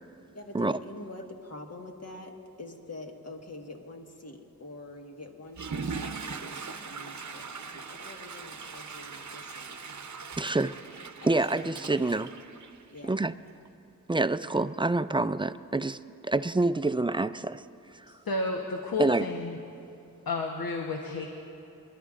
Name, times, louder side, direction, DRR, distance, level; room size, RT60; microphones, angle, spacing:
voice 1, 0.3-9.9 11.2-12.3 12.9-13.3, left 2 dB, 45° left, 2 dB, 1.7 m, -46 dB
Water / Toilet flush, 5.5-13.2, right 5 dB, 55° right, 0.8 m, -40 dB
voice 2, 10.4-10.7 11.2-12.3 13.0-13.3 14.1-17.6 19.0-19.3, right 2 dB, 15° right, 12 dB, 0.4 m, -27 dB
voice 3, 18.2-19.6 20.3-21.3, left 3 dB, 80° left, 1 dB, 1.1 m, -31 dB
30.0 x 11.5 x 2.5 m, 3.0 s
cardioid pair, 40°, 35 cm